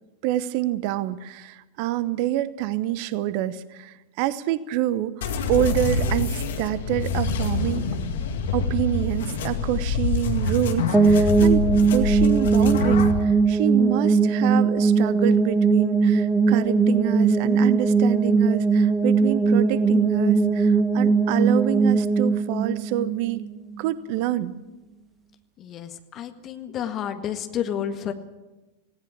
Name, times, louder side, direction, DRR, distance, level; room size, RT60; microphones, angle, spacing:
voice 1, 0.2-5.1 5.5-7.9 8.5-23.4 23.8-24.5, right 13 dB, 45° right, 18 dB, 0.8 m, -27 dB
sound 1, 5.2-13.2, left 4 dB, 60° left, 2.1 m, -26 dB
sound 2, 10.9-23.8, right 4 dB, 5° right, 2.0 m, -20 dB
voice 2, 25.6-28.1, left 9 dB, 30° left, 8 dB, 1.8 m, -30 dB
18.5 x 17.0 x 8.6 m, 1.1 s
figure-of-eight pair, 90°, 0 cm